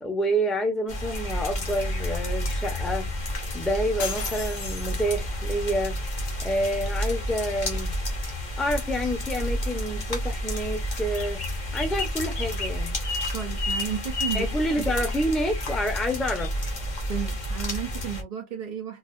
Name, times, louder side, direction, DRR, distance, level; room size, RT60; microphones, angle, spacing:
voice 1, 0.0-3.1 3.5-6.0 6.4-7.9 8.6-11.4 11.7-12.9 14.3-16.5, equal, ahead, 0.7 m, -28 dB
sound 1, 0.9-18.2, left 1 dB, 45° left, 1.0 m, -30 dB
sound 2, 4.0-5.5, left 4 dB, 70° left, 1.1 m, -35 dB
voice 2, 13.3-14.5 14.8-14.9 17.1-19.0, right 8 dB, 45° right, 0.6 m, -32 dB
4.0 x 2.3 x 2.5 m
omnidirectional pair, 1.1 m